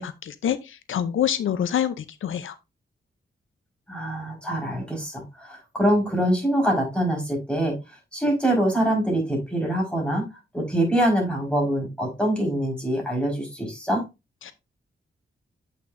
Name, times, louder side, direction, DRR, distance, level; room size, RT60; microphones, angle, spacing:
voice 1, 0.0-2.5 14.4-14.5, left 9 dB, 85° left, 0.6 m, -26 dB
voice 2, 3.9-10.3 10.5-14.0, right 1 dB, 5° left, 4.6 m, -24 dB
8.1 x 6.0 x 2.6 m
wide cardioid pair, 90°, 20 cm